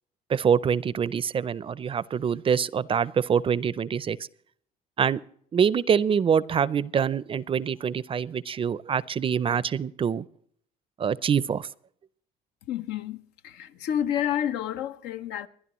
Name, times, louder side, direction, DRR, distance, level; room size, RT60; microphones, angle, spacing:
voice 1, 0.3-4.2 5.0-5.2 5.5-10.2 11.0-11.7, right 7 dB, 30° right, 0.5 m, -25 dB
voice 2, 12.7-15.5, left 10 dB, 90° left, 0.8 m, -30 dB
29.0 x 11.0 x 3.0 m
cardioid pair, 110°, 17 cm